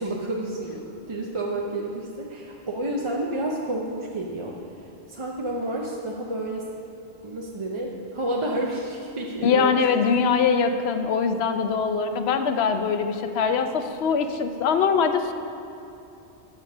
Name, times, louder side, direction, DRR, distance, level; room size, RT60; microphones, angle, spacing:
voice 1, 0.0-4.5 5.1-6.7 7.2-9.8, right 1 dB, 35° right, -1 dB, 0.6 m, -30 dB
voice 2, 9.4-15.3, left 6 dB, 75° left, 8 dB, 0.9 m, -22 dB
7.7 x 6.8 x 6.0 m, 2.8 s
omnidirectional pair, 1.1 m